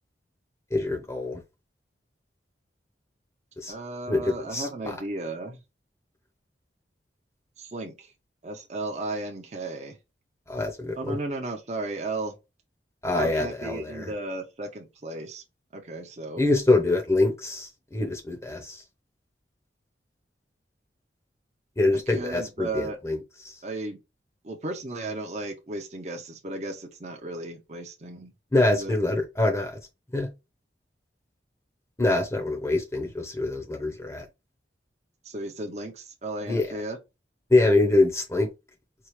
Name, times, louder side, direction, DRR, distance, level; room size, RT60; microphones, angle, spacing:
voice 1, 0.7-1.4 3.6-3.7 4.1-4.9 10.5-11.2 13.0-14.1 16.4-18.8 21.8-23.2 28.5-29.8 30.1-30.3 32.0-34.2 36.5-36.7 37.5-38.5, left 2 dB, 15° left, 0.6 m, -24 dB
voice 2, 3.7-5.6 7.6-8.1 8.4-9.9 11.0-12.3 13.1-15.4 15.7-16.4 22.1-23.0 23.6-24.0 24.4-28.3 28.7-28.9 35.2-37.0, right 2 dB, 40° right, 0.6 m, -34 dB
4.5 x 2.4 x 3.1 m
head